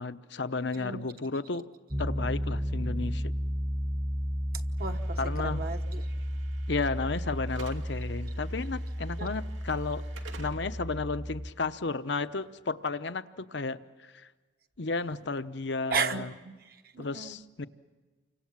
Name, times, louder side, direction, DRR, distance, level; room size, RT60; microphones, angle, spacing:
voice 1, 0.0-1.6 2.0-3.3 5.2-5.7 6.7-10.0 10.4-14.3 14.8-16.3 17.0-17.7, left 3 dB, 65° left, 0.9 m, -33 dB
Piano, 1.9-11.5, equal, 15° right, 0.9 m, -33 dB
voice 2, 4.8-6.1 9.2-9.3 15.9-17.4, right 5 dB, 50° right, 1.2 m, -34 dB
Slam / Alarm, 4.8-12.9, right 3 dB, 75° right, 2.6 m, -53 dB
29.5 x 25.5 x 7.4 m
head